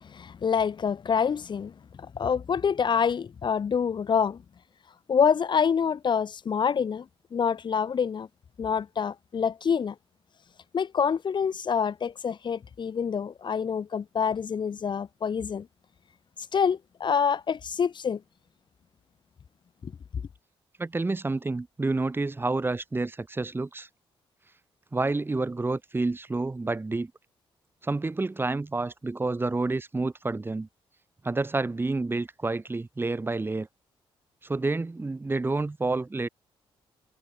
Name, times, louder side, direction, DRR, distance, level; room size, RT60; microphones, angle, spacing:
voice 1, 0.0-1.7 2.1-4.4 5.1-7.1 7.3-8.3 8.6-9.9 10.7-15.7 16.5-18.2 19.8-19.9, left 6 dB, 50° left, 2.2 m, -26 dB
voice 2, 20.8-23.9 24.9-27.1 27.8-30.7 31.2-33.7 34.4-36.3, right 3 dB, 20° right, 3.3 m, -29 dB
cardioid pair, 100°, 10 cm